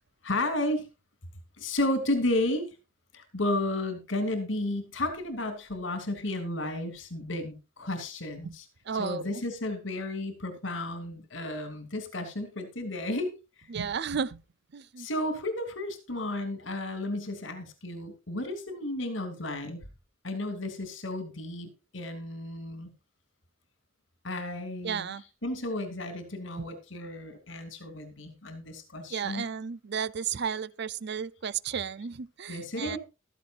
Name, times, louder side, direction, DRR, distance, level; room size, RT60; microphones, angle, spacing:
voice 1, 0.2-0.9 1.6-2.7 3.1-8.6 9.0-13.3 15.0-19.8 20.2-22.9 24.2-25.1 25.4-29.5 32.5-33.0, left 1 dB, 70° left, 2.8 m, -33 dB
voice 2, 8.8-9.4 13.7-14.4 14.7-15.1 24.8-25.2 26.6-26.7 29.1-33.0, right 7 dB, 60° right, 0.6 m, -33 dB
15.0 x 13.5 x 2.5 m
head